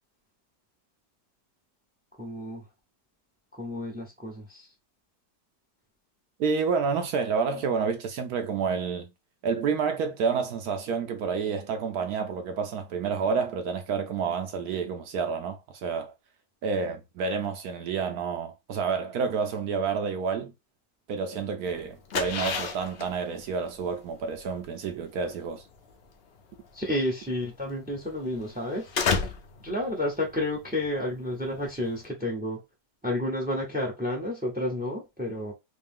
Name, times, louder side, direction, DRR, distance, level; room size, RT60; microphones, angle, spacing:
voice 1, 2.2-2.6 3.5-4.7 26.7-29.3 29.6-32.6 33.0-35.5, left 1 dB, 10° right, 0.4 m, -31 dB
voice 2, 6.4-9.1 9.4-16.1 16.6-20.5 21.1-25.6, right 5 dB, 70° right, 1.0 m, -29 dB
sound 1, 21.7-32.1, left 5 dB, 65° left, 0.6 m, -34 dB
3.3 x 2.7 x 3.5 m
omnidirectional pair, 1.8 m